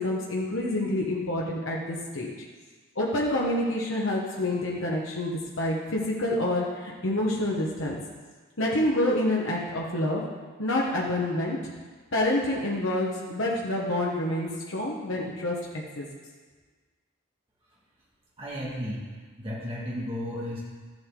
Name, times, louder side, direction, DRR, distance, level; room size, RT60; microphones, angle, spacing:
voice 1, 0.0-2.3 2.9-8.0 8.6-10.2 10.6-11.7 12.1-16.1, left 1 dB, 65° left, -4 dB, 1.4 m, -27 dB
voice 2, 18.4-19.0 19.4-20.6, equal, 25° right, -7 dB, 2.4 m, -33 dB
13.5 x 7.8 x 3.9 m, 1.4 s
head